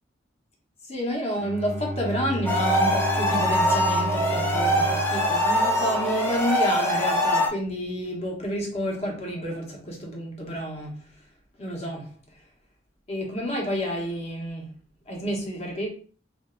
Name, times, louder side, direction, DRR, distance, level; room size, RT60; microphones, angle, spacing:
voice 1, 0.9-11.0 11.6-12.1 13.1-14.7 15.1-15.9, equal, 35° left, 1.0 m, -30 dB
Bowed string instrument, 1.4-6.6, right 1 dB, 40° right, 0.6 m, -33 dB
sound 1, 2.5-7.5, equal, 10° left, 0.6 m, -23 dB
3.3 x 2.7 x 3.7 m
head